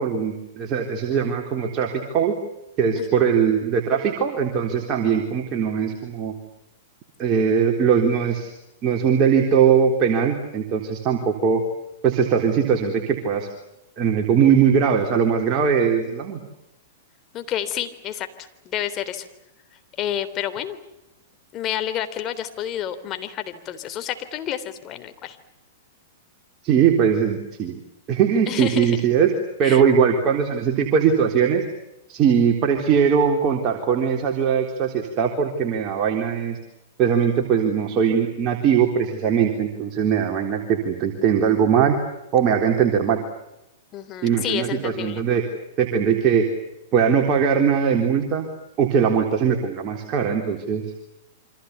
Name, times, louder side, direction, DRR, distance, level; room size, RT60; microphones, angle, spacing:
voice 1, 0.0-2.4 2.8-6.3 7.2-8.5 8.8-11.6 12.0-13.5 14.0-16.4 26.6-27.8 28.1-29.3 29.6-31.7 32.1-36.6 37.0-41.9 42.3-43.2 44.2-45.4 45.8-46.5 46.9-48.5 48.8-50.9, right 7 dB, 35° right, 2 dB, 3.9 m, -20 dB
voice 2, 3.0-3.3 17.3-19.3 20.0-20.8 21.5-25.4 28.5-29.1 29.6-29.8 43.9-45.2, left 10 dB, 35° left, 9 dB, 3.6 m, -30 dB
29.0 x 25.5 x 7.0 m, 0.88 s
hypercardioid pair, 105°, 0 cm